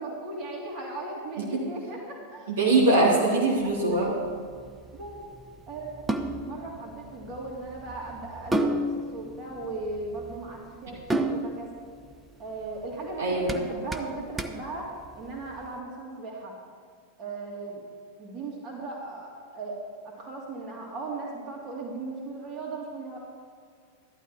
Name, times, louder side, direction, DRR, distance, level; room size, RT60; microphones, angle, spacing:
voice 1, 0.0-2.5 3.9-4.0 4.9-5.2 5.7-11.7 12.4-14.9 15.2-16.5 17.2-17.8 18.2-19.8 20.0-23.2, right 3 dB, 35° right, -2 dB, 3.0 m, -37 dB
voice 2, 2.5-4.2 13.2-13.6, right 2 dB, 60° right, -4 dB, 2.9 m, -22 dB
sound 1, 3.6-15.7, right 1 dB, 10° right, 0.8 m, -34 dB
14.0 x 12.0 x 4.5 m, 2.1 s
figure-of-eight pair, 90°, 0 cm